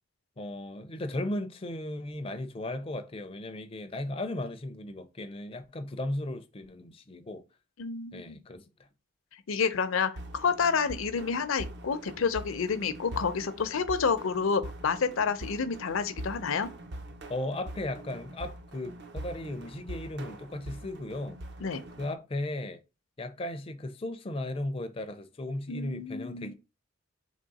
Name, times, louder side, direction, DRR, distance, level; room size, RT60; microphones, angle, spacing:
voice 1, 0.4-7.4 8.1-8.6 17.3-21.4 22.0-22.8 23.2-26.5, left 1 dB, 25° left, 0.4 m, -36 dB
voice 2, 7.8-8.4 9.5-16.7 21.6-21.8 25.7-26.5, left 5 dB, 75° left, 0.6 m, -29 dB
sound 1, 10.2-22.1, right 1 dB, 55° right, 0.5 m, -43 dB
3.6 x 3.0 x 4.1 m
head